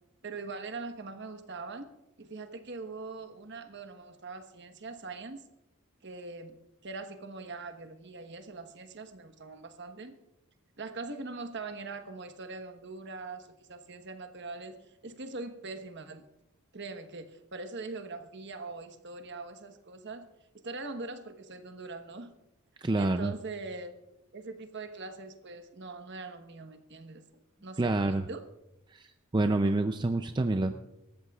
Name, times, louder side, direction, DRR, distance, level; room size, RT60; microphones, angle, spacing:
voice 1, 0.2-1.9 2.2-5.4 6.0-6.5 6.8-10.1 10.8-16.2 16.7-20.3 20.5-22.3 22.8-23.9 24.3-28.4, right 3 dB, 55° right, 7 dB, 1.2 m, -42 dB
voice 2, 22.8-23.3 27.8-28.2 28.9-29.0 29.3-30.7, right 2 dB, 20° right, 7 dB, 0.4 m, -27 dB
25.5 x 13.5 x 2.4 m, 0.90 s
head